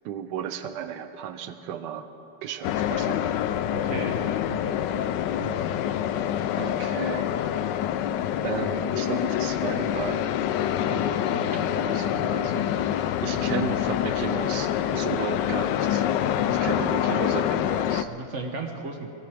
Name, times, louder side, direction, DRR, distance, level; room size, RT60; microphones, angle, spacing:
voice 1, 0.0-2.1 2.4-3.4 6.6-7.4 8.4-16.1 16.5-18.1, right 9 dB, 65° right, 10 dB, 1.2 m, -35 dB
sound 1, 2.6-18.0, left 10 dB, 80° left, 1.0 m, -26 dB
voice 2, 3.7-4.2 4.5-5.0 5.4-5.8 13.3-13.4 16.5-16.8 18.1-19.1, right 4 dB, 50° right, 4 dB, 0.9 m, -36 dB
21.5 x 17.0 x 3.5 m, 2.8 s
omnidirectional pair, 2.4 m